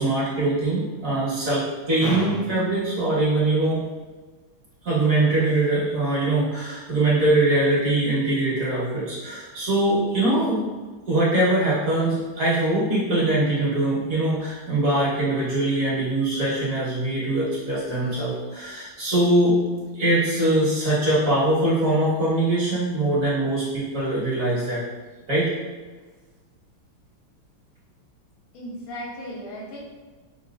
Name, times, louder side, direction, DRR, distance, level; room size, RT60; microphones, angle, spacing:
voice 1, 0.0-3.8 4.8-10.7 11.1-19.6 19.9-24.8 25.3-25.5, right 2 dB, 45° right, -8 dB, 1.4 m, -22 dB
voice 2, 28.5-29.8, equal, 80° left, -5 dB, 1.9 m, -36 dB
6.1 x 2.7 x 2.4 m, 1.3 s
omnidirectional pair, 2.3 m